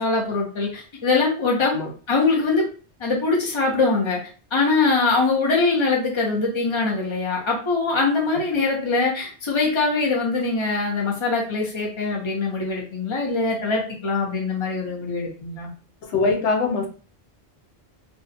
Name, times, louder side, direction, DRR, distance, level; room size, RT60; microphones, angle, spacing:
voice 1, 0.0-1.7 2.1-2.7 3.0-4.2 4.5-15.7, left 3 dB, 30° left, -2 dB, 0.9 m, -22 dB
voice 2, 16.0-16.9, left 3 dB, 85° left, 4 dB, 1.0 m, -22 dB
2.4 x 2.4 x 4.1 m, 0.38 s
omnidirectional pair, 1.1 m